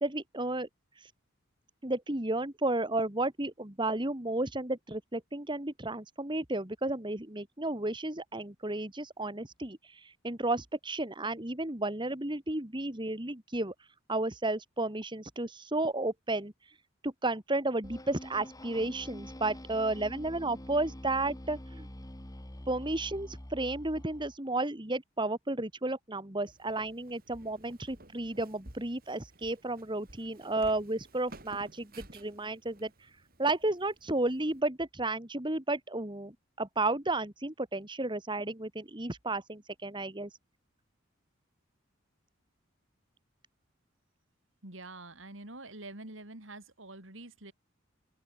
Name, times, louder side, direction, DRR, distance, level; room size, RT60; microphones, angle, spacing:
voice 1, 0.0-0.7 1.8-13.7 14.1-16.5 17.0-21.9 22.7-32.9 33.4-36.3 36.6-40.3, right 2 dB, 25° right, 2.2 m, -33 dB
sound 1, 17.8-24.4, equal, 20° left, 3.4 m, -46 dB
Walk footsteps, 26.4-34.6, right 1 dB, 45° right, 4.1 m, -55 dB
voice 2, 44.6-47.5, right 2 dB, 70° right, 4.1 m, -46 dB
open air
head